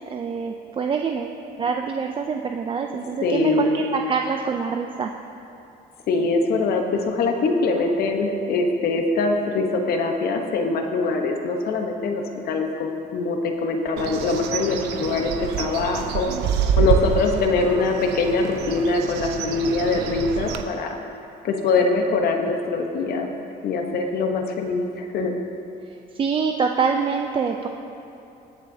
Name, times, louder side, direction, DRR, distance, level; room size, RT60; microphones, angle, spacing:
voice 1, 0.1-5.1 26.1-27.7, right 5 dB, 30° right, 3 dB, 0.5 m, -25 dB
voice 2, 3.2-3.8 6.1-16.3 16.8-20.9 21.4-23.3 23.6-25.4, left 3 dB, 65° left, 3 dB, 1.1 m, -23 dB
Bird, 14.0-20.6, right 8 dB, 85° right, 0.7 m, -27 dB
21.5 x 7.2 x 2.8 m, 2.8 s
cardioid pair, 110°, 17 cm